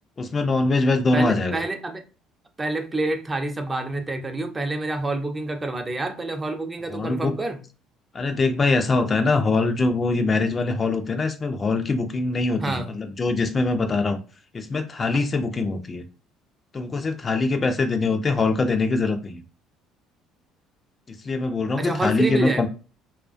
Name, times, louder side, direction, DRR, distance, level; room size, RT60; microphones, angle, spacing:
voice 1, 0.2-1.6 6.9-7.3 8.1-14.2 14.5-16.0 16.7-19.4 21.2-22.7, left 3 dB, 35° left, 0.4 m, -23 dB
voice 2, 1.1-2.0 2.6-7.6 12.6-12.9 15.1-15.3 21.8-22.7, right 2 dB, 25° right, 0.5 m, -28 dB
2.3 x 2.2 x 2.4 m
hypercardioid pair, 70°, 0 cm